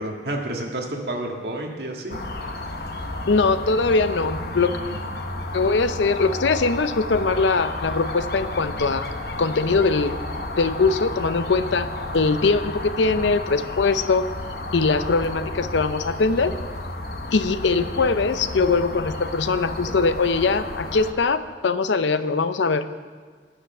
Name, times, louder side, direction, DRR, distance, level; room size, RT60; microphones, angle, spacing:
voice 1, 0.0-2.2 4.8-5.0, right 1 dB, 65° right, 0 dB, 1.8 m, -30 dB
sound 1, 2.1-21.1, left 2 dB, 55° left, 0.9 m, -32 dB
voice 2, 3.3-4.8 5.5-9.1 9.4-10.1 10.6-11.9 12.1-14.3 14.7-16.5 17.3-22.9, left 4 dB, 90° left, 12 dB, 0.6 m, -21 dB
11.0 x 10.0 x 6.6 m, 1.5 s
head